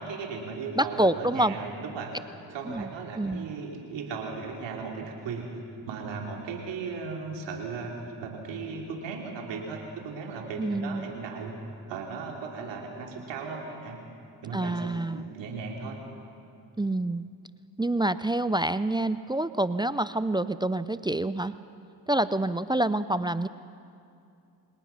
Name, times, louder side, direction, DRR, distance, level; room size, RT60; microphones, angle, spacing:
voice 1, 0.0-2.2 2.5-5.5 5.9-11.5 11.9-14.0 14.4-16.0, right 4 dB, 80° right, 1 dB, 3.4 m, -36 dB
voice 2, 0.8-1.6 2.7-3.5 10.6-11.1 14.5-15.3 16.8-17.3 17.8-21.5 22.1-23.5, right 1 dB, 10° right, 14 dB, 0.5 m, -27 dB
27.5 x 18.5 x 5.9 m, 2.6 s
supercardioid pair, 60°, 43 cm